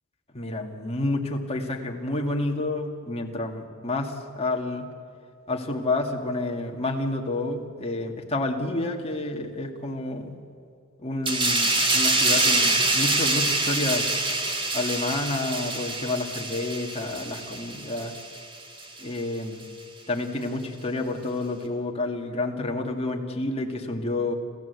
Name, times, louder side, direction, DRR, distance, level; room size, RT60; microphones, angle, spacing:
voice 1, 0.3-4.9 5.5-10.4 11.0-14.1 14.7-18.1 19.0-19.7 20.1-24.3, left 2 dB, 30° left, 2 dB, 2.1 m, -29 dB
sound 1, 11.3-18.4 18.8-19.0, right 2 dB, 25° right, 2.4 m, -25 dB
27.5 x 15.0 x 8.2 m, 2.3 s
head